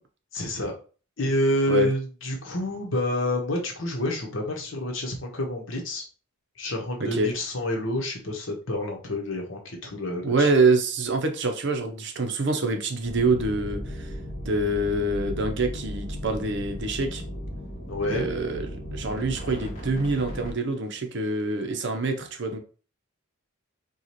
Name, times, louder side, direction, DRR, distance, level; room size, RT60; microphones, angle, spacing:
voice 1, 0.3-0.7 1.2-6.0 6.6-10.5 17.9-18.3, left 1 dB, 65° left, 1 dB, 1.1 m, -28 dB
voice 2, 10.2-14.1 14.4-17.2 18.1-22.6, right 3 dB, 55° right, 6 dB, 0.7 m, -26 dB
sound 1, 13.0-20.5, equal, 40° left, 1.5 m, -36 dB
4.9 x 2.4 x 2.9 m, 0.37 s
head